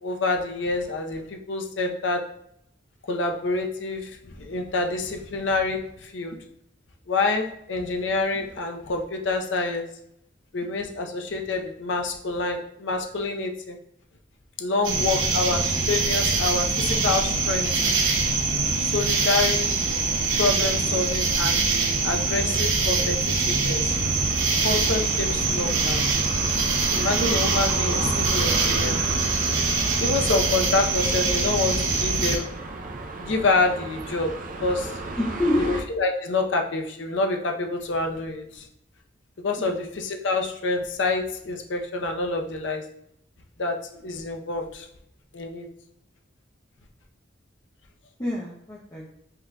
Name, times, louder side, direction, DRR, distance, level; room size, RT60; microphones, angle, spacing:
voice 1, 0.0-2.2 3.1-6.4 7.1-9.9 10.5-13.8 14.6-17.7 18.8-19.7 20.4-21.6 22.0-23.9 24.6-26.0 26.9-29.0 30.0-32.5 33.2-34.3 34.6-34.9 35.6-38.6 39.4-42.8 43.6-44.9 45.3-45.7, left 3 dB, 75° left, 3 dB, 0.6 m, -27 dB
sound 1, 14.8-32.4, right 3 dB, 85° right, 0.9 m, -23 dB
sound 2, 23.9-35.8, right 2 dB, 45° right, 0.5 m, -34 dB
voice 2, 35.2-35.7 39.6-39.8 48.2-49.1, left 1 dB, 20° left, -4 dB, 0.6 m, -27 dB
5.6 x 3.8 x 2.2 m, 0.74 s
head